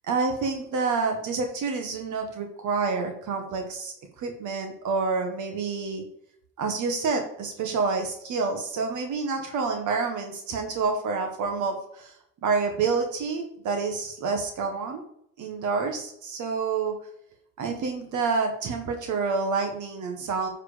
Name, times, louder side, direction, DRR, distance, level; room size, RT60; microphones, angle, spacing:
voice 1, 0.1-6.0 6.6-15.0 15.4-17.0 17.6-20.5, right 4 dB, 75° right, 4 dB, 1.5 m, -28 dB
9.7 x 4.8 x 5.1 m, 0.72 s
cardioid pair, 90°, 30 cm